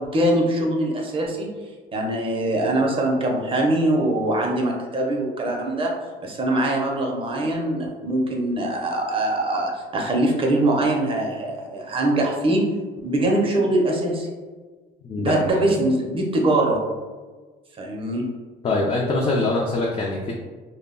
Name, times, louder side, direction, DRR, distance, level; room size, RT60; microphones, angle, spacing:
voice 1, 0.0-1.5 1.9-5.9 6.2-12.7 13.0-14.3 15.2-16.8 17.8-18.3, right 1 dB, 35° right, 0 dB, 0.5 m, -22 dB
voice 2, 15.0-15.4 18.6-20.3, left 2 dB, 35° left, -2 dB, 0.4 m, -23 dB
2.2 x 2.0 x 3.6 m, 1.4 s
cardioid pair, 110°, 17 cm